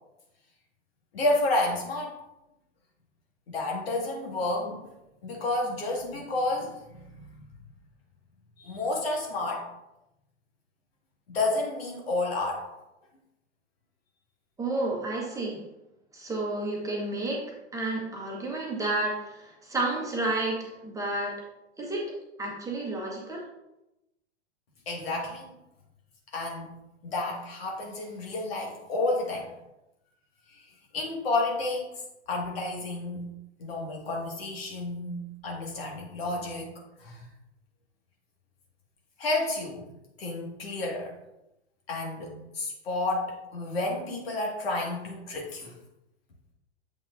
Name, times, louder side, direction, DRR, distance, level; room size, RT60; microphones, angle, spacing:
voice 1, 1.1-2.2 3.5-4.9 5.2-7.5 8.6-9.7 11.3-12.7 24.9-25.5 26.3-26.7 27.0-29.5 30.5-30.6 30.9-31.9 32.3-33.2 33.6-35.2 35.4-36.7 37.0-37.3 39.2-39.9 40.2-41.1 41.9-45.7, left 2 dB, 60° left, 0 dB, 1.9 m, -30 dB
voice 2, 14.6-15.6 16.1-17.5 17.7-21.4 21.8-22.1 22.4-23.5, right 2 dB, 10° right, -3 dB, 1.2 m, -31 dB
7.5 x 5.5 x 2.6 m, 0.90 s
figure-of-eight pair, 105°, 34 cm